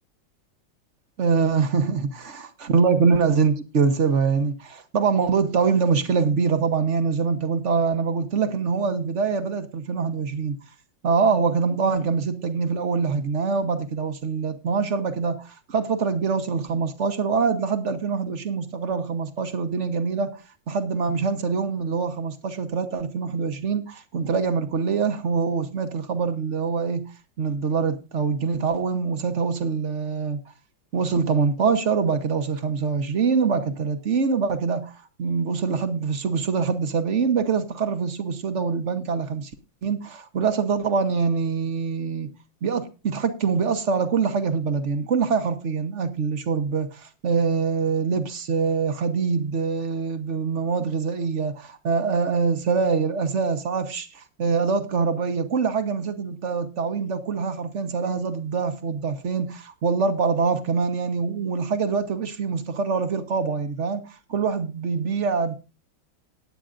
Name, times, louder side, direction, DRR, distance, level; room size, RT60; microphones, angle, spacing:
voice 1, 1.2-10.5 11.0-20.4 20.7-30.4 30.9-39.5 39.8-42.3 42.6-65.5, right 5 dB, 45° right, 1.1 m, -24 dB
18.5 x 9.3 x 2.5 m
omnidirectional pair, 2.1 m